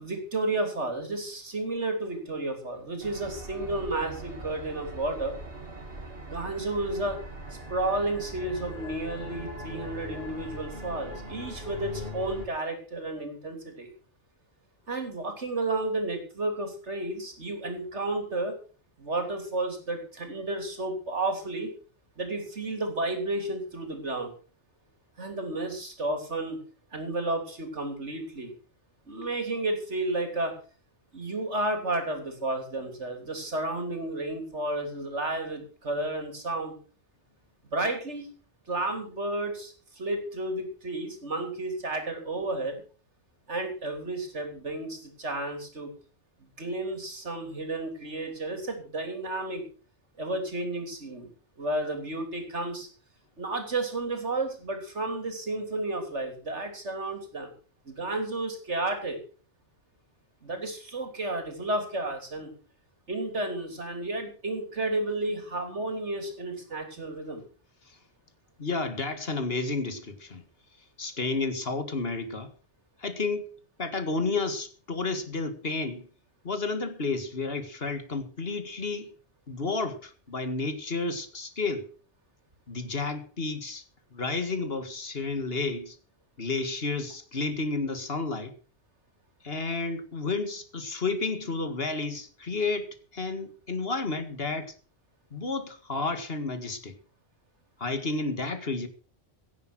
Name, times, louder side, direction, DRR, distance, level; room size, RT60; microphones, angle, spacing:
voice 1, 0.0-5.4 6.3-7.2 7.7-13.9 14.9-18.5 19.0-21.7 22.2-24.3 25.2-26.6 26.9-28.5 29.1-30.5 31.1-36.8 37.7-38.3 38.7-42.8 43.5-45.9 46.6-49.6 50.2-51.3 51.6-52.9 53.4-57.5 57.9-59.2 60.4-62.5 63.1-67.4, right 2 dB, 80° right, 3.6 m, -32 dB
sound 1, 3.0-12.5, equal, 55° right, 2.6 m, -41 dB
voice 2, 68.6-70.4 71.0-72.5 73.0-76.1 76.4-79.1 79.5-81.9 82.7-83.8 84.1-86.0 86.4-88.5 89.4-94.7 95.3-97.0 97.8-98.9, left 3 dB, 55° left, 2.1 m, -31 dB
16.5 x 8.7 x 6.1 m
omnidirectional pair, 1.2 m